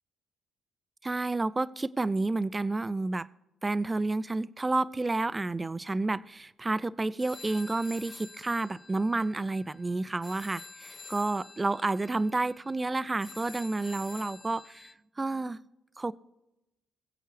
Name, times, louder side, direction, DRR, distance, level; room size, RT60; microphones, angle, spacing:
voice 1, 1.0-3.3 3.6-14.9 15.2-15.6 16.0-16.1, right 2 dB, 20° right, 17 dB, 0.4 m, -30 dB
sound 1, 7.2-14.9, left 4 dB, 30° left, 0.6 m, -48 dB
21.0 x 8.0 x 3.3 m, 0.92 s
cardioid pair, 90°, 0 cm